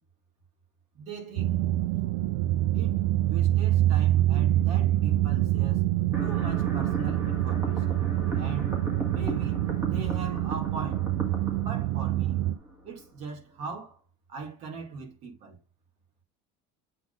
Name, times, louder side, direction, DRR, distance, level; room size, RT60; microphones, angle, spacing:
voice 1, 0.9-1.6 2.7-5.9 6.2-8.0 8.3-8.8 9.1-11.1 11.5-12.4 12.8-14.0 14.3-15.6, right 4 dB, 50° right, 2.5 m, -40 dB
sound 1, 1.4-12.5, right 14 dB, 85° right, 0.5 m, -26 dB
sound 2, 6.1-13.2, right 1 dB, 15° right, 1.7 m, -37 dB
8.3 x 3.8 x 4.0 m
cardioid pair, 155°, 15 cm